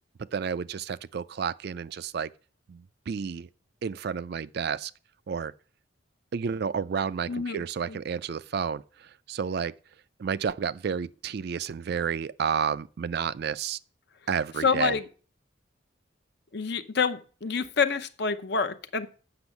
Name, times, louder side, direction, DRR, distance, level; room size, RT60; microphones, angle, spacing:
voice 1, 0.3-2.3 2.7-3.5 3.8-4.9 5.3-5.5 6.3-8.8 9.3-9.7 10.2-13.8 14.3-15.0, right 6 dB, 55° right, 0.3 m, -31 dB
voice 2, 7.3-8.0 14.6-15.0 16.5-19.1, left 5 dB, 55° left, 0.7 m, -27 dB
7.9 x 6.3 x 7.1 m
head